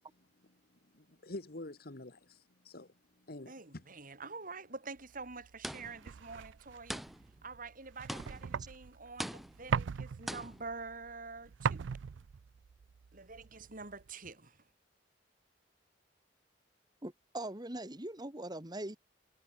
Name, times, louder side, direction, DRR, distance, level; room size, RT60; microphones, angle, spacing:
voice 1, 0.9-3.8, left 2 dB, 55° left, 1.8 m, -47 dB
voice 2, 3.5-7.0 7.4-11.9 13.1-14.7, right 4 dB, 50° right, 5.0 m, -47 dB
sound 1, 5.2-14.1, right 6 dB, 85° right, 0.4 m, -40 dB
sound 2, 5.6-6.1 6.9-7.4 8.1-8.6 9.2-9.8 10.3-10.7, equal, ahead, 3.6 m, -42 dB
voice 3, 17.0-19.0, right 1 dB, 20° right, 2.7 m, -41 dB
head